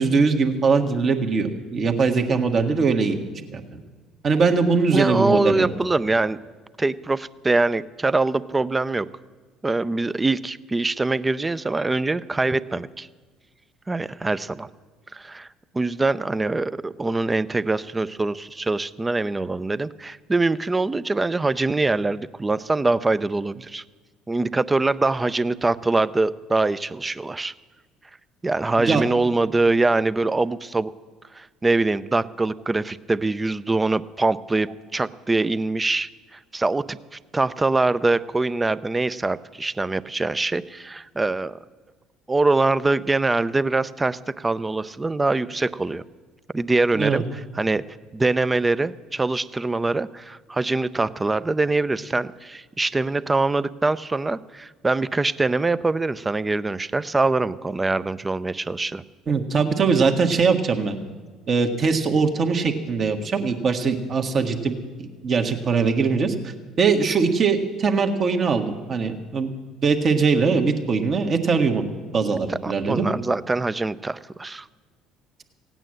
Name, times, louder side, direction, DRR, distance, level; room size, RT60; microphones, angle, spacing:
voice 1, 0.0-3.2 3.5-3.8 4.2-5.7 28.8-29.0 46.9-47.2 59.3-60.9 61.5-69.5 69.8-71.8 72.1-73.0, right 5 dB, 45° right, 5 dB, 1.5 m, -21 dB
voice 2, 2.3-2.6 4.9-6.4 6.8-9.1 9.6-13.1 13.9-14.7 15.1-15.5 15.7-23.8 24.3-27.5 28.4-30.9 31.3-41.6 42.3-46.0 46.5-47.8 48.1-59.0 72.3-74.7, right 3 dB, 20° right, 16 dB, 0.5 m, -23 dB
16.5 x 9.0 x 7.6 m, 1.4 s
hypercardioid pair, 70°, 0 cm